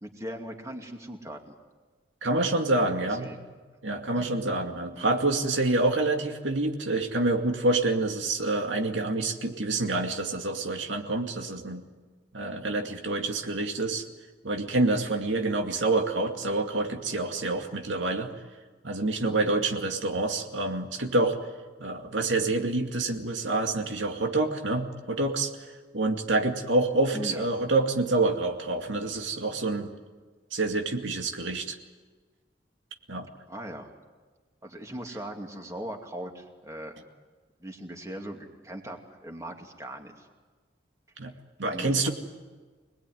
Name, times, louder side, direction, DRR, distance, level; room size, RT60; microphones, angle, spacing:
voice 1, 0.0-1.5 2.9-3.4 4.1-4.3 4.9-5.1 27.1-27.5 33.5-33.9 34.6-37.0 37.6-40.3 41.6-42.1, right 1 dB, 15° right, 3 dB, 2.5 m, -39 dB
voice 2, 2.2-3.3 3.8-11.8 12.3-14.0 14.4-18.3 18.8-21.4 21.8-25.5 25.9-29.9 30.5-31.8 33.1-33.3 41.2-41.3 41.6-42.1, right 2 dB, 90° right, 3 dB, 2.3 m, -27 dB
26.5 x 20.0 x 9.4 m, 1.4 s
head